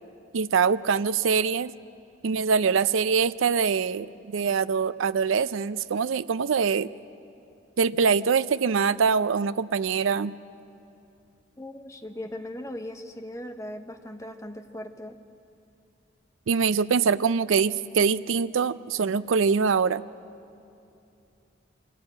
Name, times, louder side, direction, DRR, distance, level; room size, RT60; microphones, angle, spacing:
voice 1, 0.3-1.7 2.2-6.9 7.8-10.3 16.5-20.0, right 5 dB, 85° right, 15 dB, 0.5 m, -24 dB
voice 2, 11.6-15.2, left 1 dB, 15° left, 6 dB, 0.9 m, -38 dB
23.5 x 14.5 x 8.7 m, 2.8 s
head